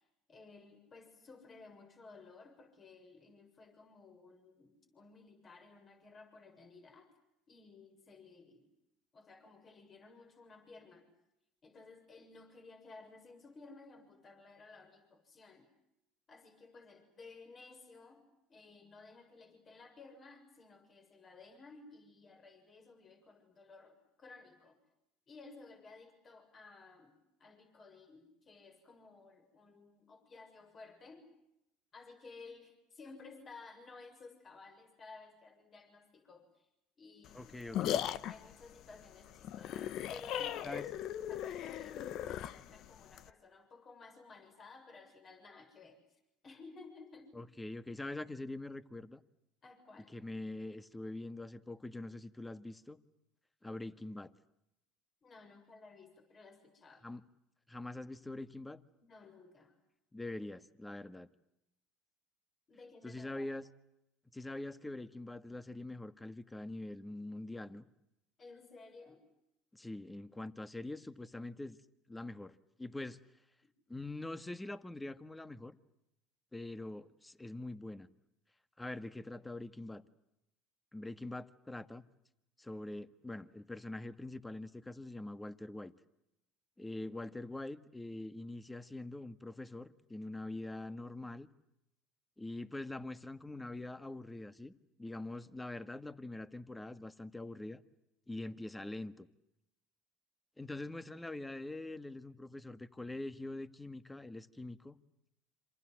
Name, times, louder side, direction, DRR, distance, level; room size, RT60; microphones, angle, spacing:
voice 1, 0.3-7.1 7.5-8.7 9.1-11.1 11.6-15.7 16.3-18.2 18.5-24.8 25.3-27.1 27.4-31.3 31.9-36.7 37.0-37.5 38.0-40.8 41.2-46.0 46.4-47.4 49.6-50.1 55.2-57.1 59.0-59.8 62.7-63.5 68.4-69.2, left 3 dB, 35° left, 7.0 m, -56 dB
sound 1, 37.2-43.3, left 11 dB, 60° left, 1.0 m, -38 dB
voice 2, 37.3-38.1 40.6-40.9 47.3-49.2 50.1-53.0 53.6-54.3 57.0-57.2 57.7-58.8 60.1-61.3 63.0-63.6 64.3-67.9 69.7-71.8 72.1-72.5 72.8-73.2 73.9-75.8 76.5-78.1 78.8-80.0 80.9-82.0 82.6-85.9 86.8-91.5 92.4-94.7 95.0-97.8 98.3-99.3 100.6-105.0, left 2 dB, 10° left, 1.7 m, -44 dB
27.5 x 27.0 x 7.8 m
hypercardioid pair, 80°, 0 cm